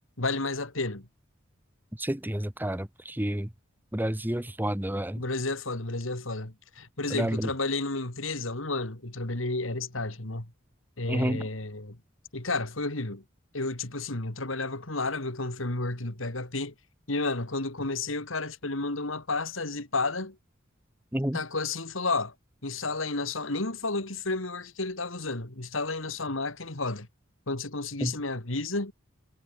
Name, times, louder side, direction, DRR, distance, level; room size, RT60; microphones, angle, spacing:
voice 1, 0.2-1.1 5.2-10.5 11.0-12.0 12.3-13.2 13.5-16.7 17.1-20.4 21.3-22.3 22.6-27.1 27.5-28.9, left 3 dB, 85° left, 3.0 m, -31 dB
voice 2, 2.0-3.5 3.9-5.2 7.1-7.5 11.1-11.4 21.1-21.4 28.0-28.1, right 1 dB, 10° right, 1.1 m, -30 dB
head